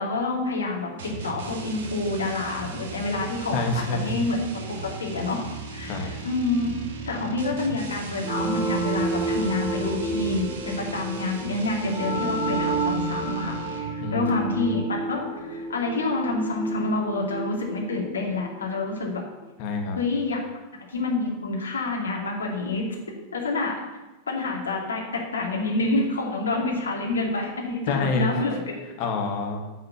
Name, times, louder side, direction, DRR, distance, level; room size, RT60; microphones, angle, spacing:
voice 1, 0.0-6.7 7.1-19.2 19.9-20.4 20.9-22.8 23.3-23.8 24.3-28.8, left 2 dB, 70° left, -1 dB, 2.5 m, -28 dB
sound 1, 1.0-14.1, right 4 dB, 55° right, 2.0 m, -38 dB
voice 2, 3.5-4.1 5.8-6.1 14.0-14.7 19.6-20.0 27.9-28.4 29.0-29.6, left 3 dB, 45° left, 2 dB, 2.0 m, -27 dB
sound 2, 8.2-18.7, right 2 dB, 25° right, 2.3 m, -30 dB
9.6 x 5.6 x 8.2 m, 1.1 s
figure-of-eight pair, 90°, 0 cm